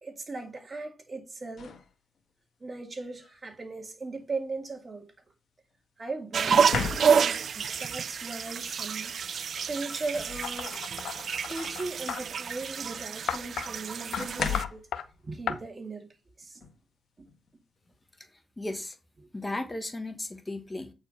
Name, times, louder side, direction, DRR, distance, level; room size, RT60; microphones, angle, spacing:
voice 1, 0.0-1.8 2.6-5.1 6.0-6.8 7.2-9.1 9.5-10.8 11.5-14.9 15.2-16.6, right 3 dB, 40° right, 2.2 m, -38 dB
sound 1, 1.6-1.9 3.2-3.4 6.5-7.5 9.2-9.3 9.8-10.9 11.4-11.6 13.0-13.1 14.2-14.9 16.6-16.8 17.3-17.6, left 6 dB, 65° left, 1.4 m, -35 dB
sound 2, 6.3-14.6, right 6 dB, 65° right, 0.4 m, -29 dB
sound 3, 10.4-12.2 13.3-13.7 14.1-14.3 14.5-15.0 15.5-15.6, left 9 dB, 85° left, 0.7 m, -34 dB
voice 2, 18.6-19.0 19.3-20.9, left 2 dB, 20° left, 1.5 m, -35 dB
8.6 x 4.6 x 5.3 m
cardioid pair, 65°, 0 cm